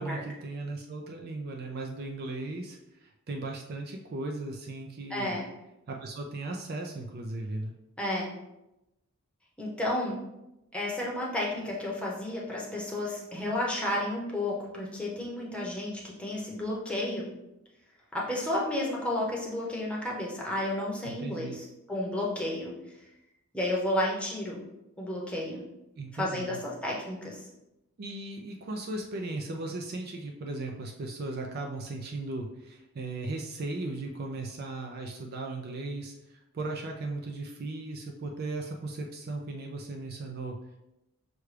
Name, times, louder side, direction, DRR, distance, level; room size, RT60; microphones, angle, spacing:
voice 1, 0.0-5.4 5.9-7.7 21.0-21.6 26.0-26.6 28.0-40.8, right 2 dB, 45° right, 1 dB, 0.4 m, -37 dB
voice 2, 5.1-5.5 8.0-8.3 9.6-10.2 10.7-17.3 18.1-22.7 23.5-24.6 25.0-25.6 26.1-27.5, left 1 dB, 5° left, -4 dB, 0.8 m, -32 dB
6.0 x 2.3 x 3.3 m, 0.91 s
head